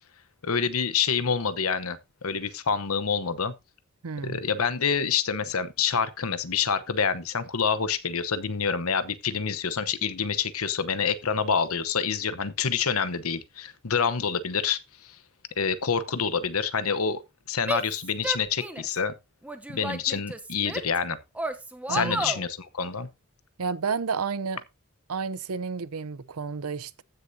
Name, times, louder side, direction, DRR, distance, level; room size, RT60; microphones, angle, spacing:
voice 1, 0.4-3.5 4.2-15.2 15.6-17.2 17.5-19.1 19.7-21.2 21.9-23.1, left 6 dB, 75° left, 0.9 m, -27 dB
voice 2, 4.0-4.4 21.9-22.3 23.6-24.6 25.1-27.0, right 5 dB, 80° right, 0.7 m, -31 dB
Female speech woman speaking / Yell, 17.6-19.0 19.4-21.0 21.3-22.4, right 1 dB, 5° right, 0.8 m, -32 dB
15.0 x 6.6 x 2.7 m
head